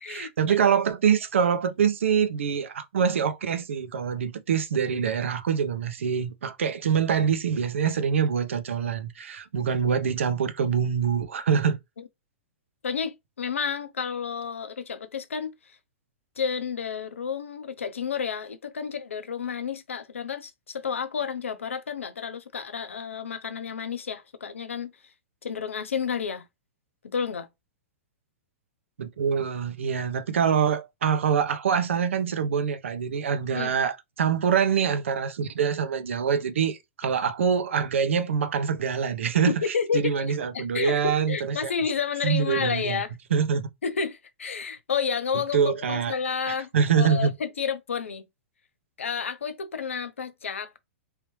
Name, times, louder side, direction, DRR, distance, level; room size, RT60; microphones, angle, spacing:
voice 1, 0.1-11.8 29.0-41.7 42.2-43.0 43.3-43.7 45.5-46.1 46.5-47.3, right 7 dB, 75° right, 0.7 m, -25 dB
voice 2, 12.8-15.5 16.4-24.9 25.4-26.4 27.0-27.5 33.5-33.7 39.5-43.1 43.8-46.7 47.0-48.2 49.0-50.8, left 6 dB, 85° left, 0.6 m, -30 dB
3.3 x 2.8 x 3.1 m
hypercardioid pair, 115°, 7 cm